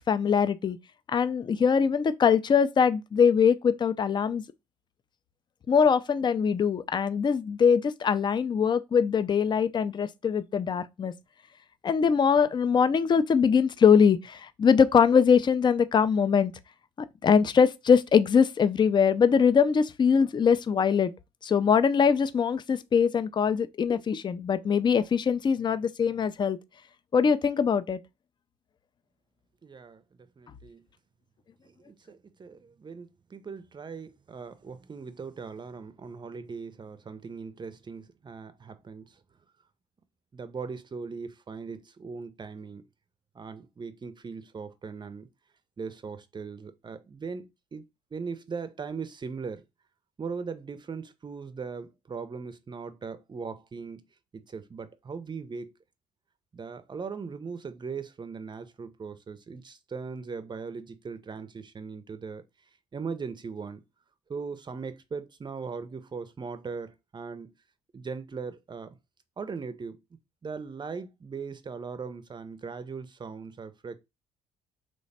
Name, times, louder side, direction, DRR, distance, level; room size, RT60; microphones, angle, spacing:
voice 1, 0.1-0.8 1.1-4.4 5.7-11.1 11.8-16.5 17.2-21.1 21.4-26.6 27.1-28.0, left 6 dB, 25° left, 0.4 m, -22 dB
voice 2, 29.6-30.8 31.6-39.1 40.3-42.8 43.3-45.3 45.8-47.8 48.1-49.6 50.2-54.0 54.3-55.7 56.5-62.4 62.9-63.8 64.3-67.5 67.9-69.0 69.4-70.0 70.4-74.0, right 5 dB, 25° right, 0.6 m, -39 dB
3.1 x 2.1 x 4.1 m
hypercardioid pair, 55°, 17 cm